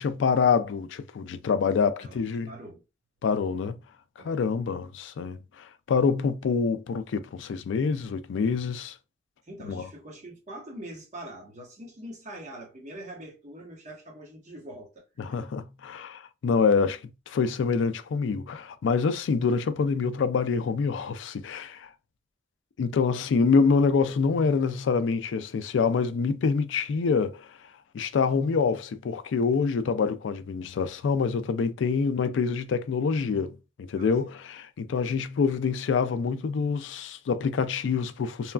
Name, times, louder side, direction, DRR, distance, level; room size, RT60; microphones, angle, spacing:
voice 1, 0.0-2.5 3.2-3.8 4.2-9.0 9.6-9.9 15.2-17.0 17.3-21.9 22.8-27.5 27.9-38.5, left 5 dB, 80° left, 0.3 m, -26 dB
voice 2, 2.0-2.8 4.2-4.4 9.5-15.4 33.9-34.1, right 1 dB, 40° right, 1.0 m, -43 dB
3.0 x 2.3 x 2.3 m
head